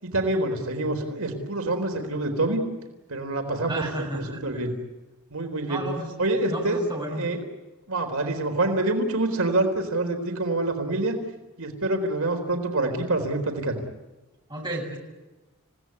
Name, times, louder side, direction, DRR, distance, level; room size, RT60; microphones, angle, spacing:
voice 1, 0.0-2.6 3.1-4.7 5.3-5.8 6.2-6.8 7.2-7.4 7.9-11.2 11.6-13.8, right 2 dB, 80° right, 4 dB, 4.1 m, -26 dB
voice 2, 3.7-4.4 5.7-6.1 6.5-7.3 14.5-15.0, right 1 dB, 20° right, 0 dB, 7.8 m, -32 dB
29.5 x 17.5 x 9.7 m, 1.1 s
head